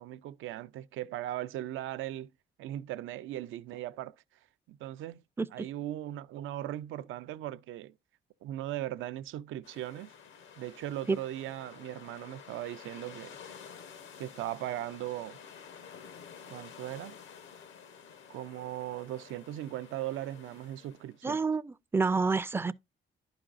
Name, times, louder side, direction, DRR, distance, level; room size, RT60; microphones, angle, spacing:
voice 1, 0.0-2.3 2.6-4.1 4.7-5.2 5.5-7.9 8.4-10.1 10.6-13.4 14.2-15.4 16.5-17.2 18.3-21.4, right 13 dB, 80° right, 0.4 m, -38 dB
sound 1, 9.6-21.2, left 7 dB, 75° left, 0.8 m, -51 dB
voice 2, 21.2-22.7, right 4 dB, 10° right, 0.3 m, -29 dB
11.0 x 4.9 x 2.4 m
cardioid pair, 90°, 20 cm